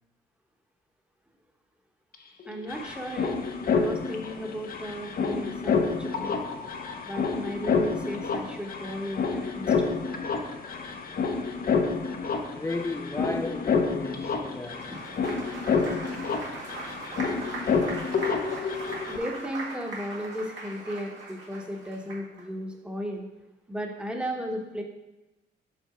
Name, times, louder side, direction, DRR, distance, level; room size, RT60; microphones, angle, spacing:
sound 1, 2.1-2.2 2.4-19.2, left 5 dB, 45° left, 0.7 m, -29 dB
voice 1, 2.5-3.3 3.7-6.4 7.0-10.0 19.1-23.3 23.7-24.8, equal, 5° right, 1.0 m, -35 dB
voice 2, 12.6-15.1, left 2 dB, 15° left, 0.3 m, -34 dB
Applause, 14.6-22.4, right 3 dB, 65° right, 1.8 m, -40 dB
6.0 x 3.9 x 4.8 m
cardioid pair, 90°, 20 cm